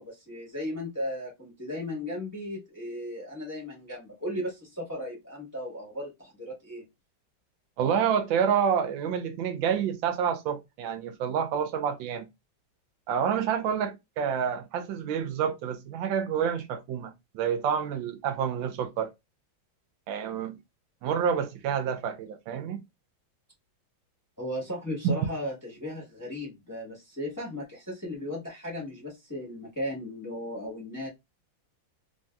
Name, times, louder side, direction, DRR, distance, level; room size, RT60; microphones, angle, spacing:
voice 1, 0.0-6.8 24.4-31.1, left 1 dB, 15° left, 0.9 m, -36 dB
voice 2, 7.8-12.3 13.1-19.1 20.1-20.6 21.0-22.8, right 7 dB, 85° right, 1.4 m, -28 dB
3.4 x 2.7 x 2.2 m
omnidirectional pair, 2.1 m